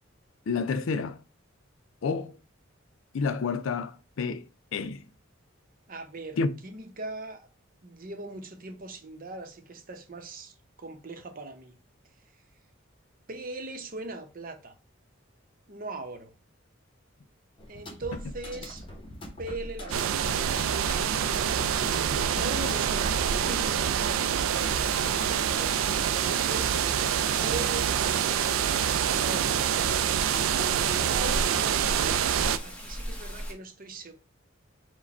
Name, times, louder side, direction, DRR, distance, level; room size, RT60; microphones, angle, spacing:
voice 1, 0.5-1.2 2.0-2.4 3.1-4.4 4.7-5.0 6.4-6.5, left 4 dB, 80° left, 0.4 m, -29 dB
voice 2, 5.9-7.5 7.8-11.7 13.3-14.8 15.7-16.3 17.7-18.9 19.4-20.8 22.3-26.9 27.4-29.6 30.5-32.2 32.6-34.1, right 2 dB, 45° right, 0.7 m, -40 dB
sound 1, 17.6-23.0, left 1 dB, 25° left, 1.1 m, -41 dB
sound 2, 19.9-32.6, right 8 dB, 85° right, 0.3 m, -26 dB
Rain, 24.5-33.5, equal, 5° left, 0.8 m, -40 dB
4.7 x 2.2 x 4.2 m
head